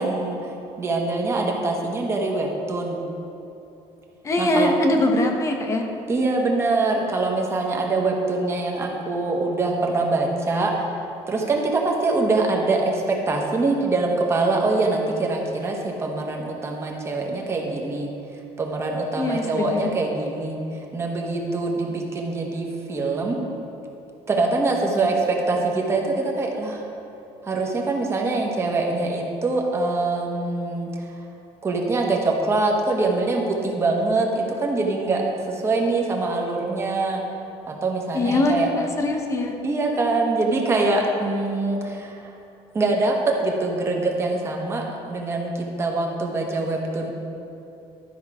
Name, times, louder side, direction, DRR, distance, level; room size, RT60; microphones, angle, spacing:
voice 1, 0.0-3.0 4.4-4.7 6.1-10.9 11.3-18.1 18.6-23.4 24.3-26.8 27.4-31.2 31.6-37.2 37.7-38.7 39.6-42.3 42.7-47.1, right 3 dB, 20° right, 1 dB, 1.1 m, -24 dB
voice 2, 4.2-5.9 19.1-19.9 38.1-39.5, left 2 dB, 25° left, 3 dB, 0.9 m, -22 dB
12.0 x 5.5 x 4.8 m, 2.9 s
cardioid pair, 160°, 12 cm